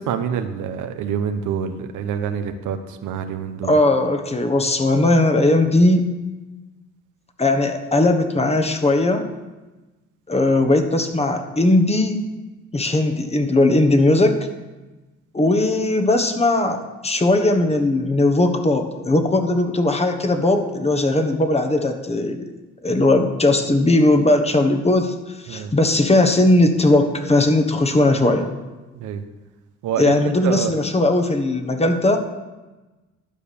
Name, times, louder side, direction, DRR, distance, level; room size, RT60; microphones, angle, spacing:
voice 1, 0.1-2.8 3.0-3.7 25.5-25.7 29.0-29.2 29.8-30.1 30.4-30.7, right 8 dB, 85° right, 8 dB, 0.9 m, -26 dB
voice 2, 3.6-6.0 7.4-9.3 10.3-12.3 12.7-14.5 15.3-22.5 22.8-25.1 25.4-28.5 30.0-32.2, left 2 dB, 20° left, 5 dB, 1.2 m, -18 dB
12.0 x 5.1 x 6.9 m, 1.1 s
cardioid pair, 90°, 30 cm